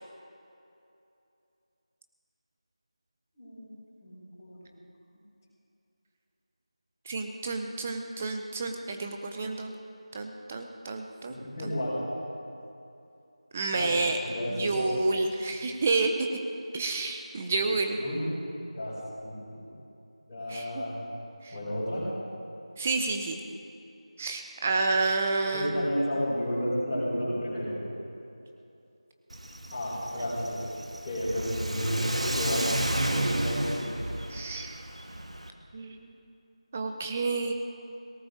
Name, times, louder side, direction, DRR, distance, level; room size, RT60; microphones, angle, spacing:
voice 1, 3.4-4.7 11.3-12.0 13.7-13.9 14.2-14.8 18.0-18.5 18.8-18.9 19.2-19.6 20.3-20.9 21.5-22.1 25.5-27.8 29.7-30.6 31.0-32.0 32.3-33.9, equal, 15° left, -16 dB, 4.8 m, -32 dB
voice 2, 7.1-9.7 10.1-11.4 11.6-11.7 13.5-14.2 14.5-16.3 16.7-18.0 20.5-20.8 21.4-21.6 22.8-23.4 24.2-25.9 34.3-34.8 35.7-36.1 36.7-37.5, right 3 dB, 15° right, 5 dB, 0.6 m, -29 dB
Car / Accelerating revving vroom, 29.3-35.5, right 1 dB, 85° right, 1.3 m, -31 dB
18.0 x 17.5 x 3.9 m, 2.7 s
figure-of-eight pair, 175°, 3 cm